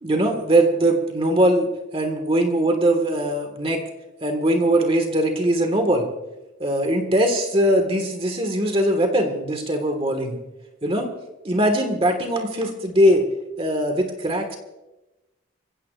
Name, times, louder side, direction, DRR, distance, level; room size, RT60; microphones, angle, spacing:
voice 1, 0.0-1.7 1.9-3.8 4.2-6.1 6.6-10.4 10.8-11.1 11.4-13.2 13.6-14.6, right 1 dB, 30° right, 4 dB, 1.7 m, -21 dB
26.0 x 15.5 x 2.5 m, 1.0 s
head